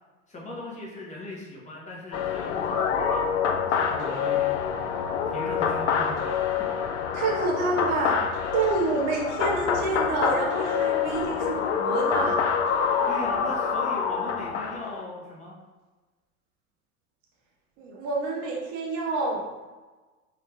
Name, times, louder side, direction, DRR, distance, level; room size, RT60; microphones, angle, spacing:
voice 1, 0.3-3.4 3.7-4.9 5.3-6.2 6.6-6.7 13.0-15.5, left 1 dB, 15° left, -4 dB, 1.0 m, -39 dB
sound 1, 2.1-15.0, left 7 dB, 55° left, 0.5 m, -26 dB
voice 2, 7.1-8.2 8.5-12.6 17.8-19.4, right 3 dB, 40° right, -1 dB, 0.9 m, -28 dB
3.2 x 2.8 x 3.4 m, 1.2 s
figure-of-eight pair, 80°, 42 cm